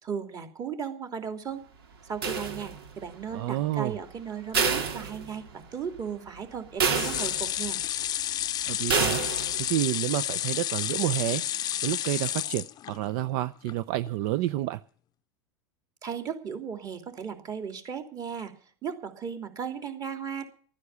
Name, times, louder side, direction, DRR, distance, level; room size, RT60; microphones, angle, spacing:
voice 1, 0.0-1.7 2.0-7.8 16.0-18.5 18.8-20.4, right 7 dB, 30° right, 6 dB, 3.0 m, -36 dB
sound 1, 2.2-3.0 4.5-5.7 6.1-6.2 6.8-7.7 8.9-9.7, right 5 dB, 90° right, 2.8 m, -28 dB
voice 2, 3.3-4.0 8.7-9.2 9.6-14.8, right 15 dB, 60° right, 14 dB, 0.6 m, -29 dB
sound 2, 6.9-13.2 13.7-13.8 14.1-14.2, left 12 dB, 35° left, 0.6 m, -31 dB
13.5 x 9.8 x 8.3 m, 0.43 s
supercardioid pair, 120°, 12 cm